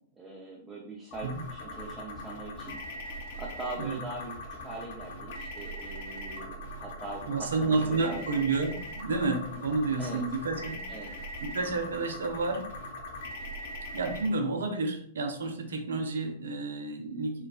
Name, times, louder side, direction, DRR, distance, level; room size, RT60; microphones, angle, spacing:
voice 1, 0.1-2.8 3.4-8.4 10.0-10.2 10.9-11.1, right 2 dB, 20° right, -2 dB, 0.6 m, -42 dB
freq-mod, 1.1-14.3, left 1 dB, 65° left, 0.9 m, -41 dB
voice 2, 7.3-12.8 13.9-17.5, right 3 dB, 80° right, 5 dB, 0.6 m, -30 dB
4.5 x 2.3 x 2.4 m, 0.62 s
hypercardioid pair, 110°, 0 cm